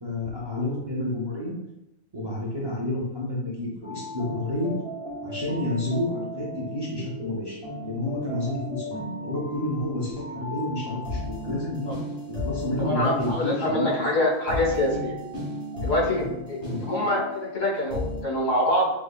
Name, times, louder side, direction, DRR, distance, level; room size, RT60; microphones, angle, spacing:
voice 1, 0.0-1.5 2.1-4.7 5.2-7.6 7.8-11.9 12.3-13.9 16.6-16.8, left 1 dB, 25° right, -5 dB, 0.6 m, -30 dB
sound 1, 3.8-18.2, left 1 dB, 50° left, 1.1 m, -35 dB
voice 2, 12.8-15.2 15.8-18.9, left 1 dB, 70° left, -4 dB, 1.5 m, -25 dB
5.4 x 2.1 x 2.3 m, 0.87 s
omnidirectional pair, 1.3 m